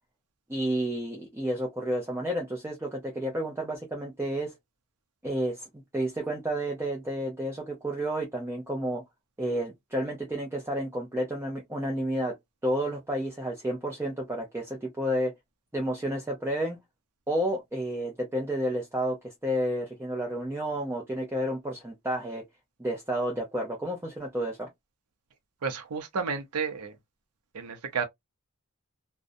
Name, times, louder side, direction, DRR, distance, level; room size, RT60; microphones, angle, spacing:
voice 1, 0.5-4.5 5.2-9.0 9.4-12.4 12.6-15.3 15.7-16.8 17.3-22.4 22.8-24.7, right 1 dB, 10° right, 0.5 m, -31 dB
voice 2, 25.6-26.9 27.5-28.0, right 5 dB, 90° right, 0.5 m, -31 dB
2.5 x 2.1 x 2.5 m
head